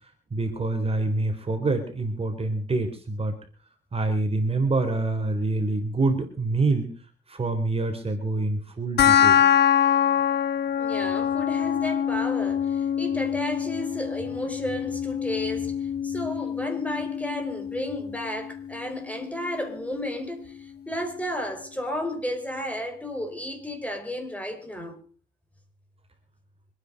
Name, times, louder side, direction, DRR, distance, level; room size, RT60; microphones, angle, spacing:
voice 1, 0.3-3.4 3.9-6.9 7.3-9.4, right 2 dB, 30° right, 3.8 m, -26 dB
sound 1, 9.0-20.0, left 9 dB, 60° left, 1.1 m, -25 dB
voice 2, 10.8-15.8 16.0-25.0, left 1 dB, 5° left, 4.9 m, -33 dB
25.0 x 10.0 x 5.3 m
cardioid pair, 90°, 20 cm